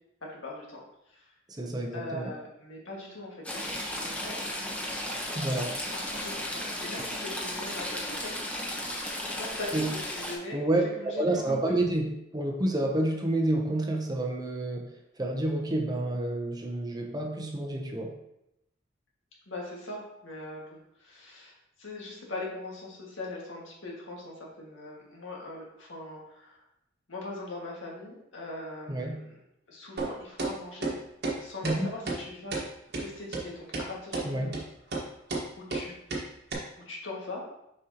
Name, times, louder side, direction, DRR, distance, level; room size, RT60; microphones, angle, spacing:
voice 1, 0.3-1.3 1.9-4.7 5.9-8.6 9.4-10.6 11.0-11.8 19.5-26.6 27.1-29.3 29.7-31.0 31.4-32.6 32.9-34.6 35.6-35.9 36.8-37.4, left 2 dB, 75° left, -3 dB, 1.8 m, -41 dB
voice 2, 1.5-2.3 5.3-5.7 9.7-9.9 10.5-12.1 12.3-14.9 15.2-18.1 28.9-29.2 31.6-31.9 34.2-34.5, right 1 dB, 20° right, 2 dB, 0.8 m, -29 dB
Stream / Trickle dribble, 3.4-10.3, left 1 dB, 5° left, 0.9 m, -35 dB
sound 1, 30.0-30.1 30.4-30.5 30.8-30.9 31.2-31.4 31.6-31.8 32.1-32.2 32.5-32.6 32.9-33.0 33.3-33.4 33.7-33.9 34.1-34.3 34.5-34.6 34.9-35.0 35.3-35.4 35.7-35.8 36.1-36.2 36.5-36.6, right 3 dB, 55° right, 1.3 m, -31 dB
6.7 x 5.3 x 2.9 m, 0.82 s
head